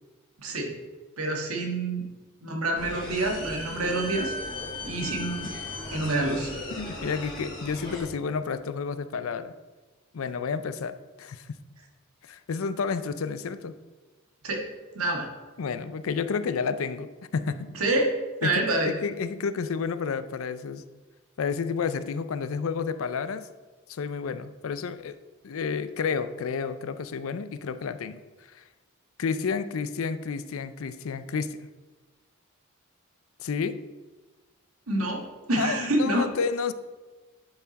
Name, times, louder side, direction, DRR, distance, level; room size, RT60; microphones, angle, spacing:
voice 1, 0.4-0.7 1.2-2.0 2.4-4.3 4.8-5.5 5.9-6.5 14.4-14.6 14.9-15.3 17.7-18.1 18.4-18.9 34.9-36.3, right 2 dB, 85° right, 1 dB, 1.6 m, -27 dB
sound 1, 2.8-8.0, left 2 dB, 20° left, 2.7 m, -36 dB
voice 2, 6.8-9.5 10.1-11.6 12.2-13.7 15.6-17.7 18.4-20.8 21.4-23.5 23.9-25.2 25.4-28.2 28.5-28.6 29.2-31.7 33.4-33.8 35.6-36.7, left 5 dB, 70° left, 12 dB, 0.4 m, -30 dB
10.5 x 4.7 x 4.0 m, 1.2 s
head